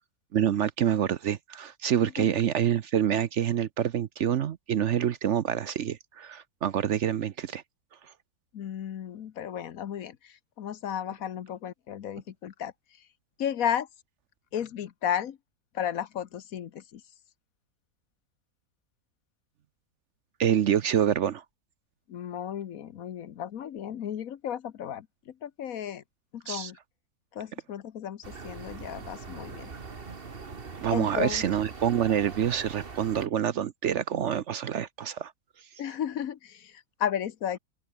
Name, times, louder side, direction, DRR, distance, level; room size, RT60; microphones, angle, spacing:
voice 1, 0.3-7.6 20.4-21.4 26.5-26.7 30.8-35.3, right 9 dB, 60° right, 0.9 m, -27 dB
voice 2, 8.5-13.0 13.4-13.9 14.5-15.4 15.7-17.0 22.1-26.0 26.3-26.8 27.3-29.7 30.9-31.5 35.8-37.6, left 9 dB, 70° left, 1.3 m, -34 dB
sound 1, 28.2-33.3, right 4 dB, 40° right, 1.8 m, -42 dB
open air
omnidirectional pair, 1.6 m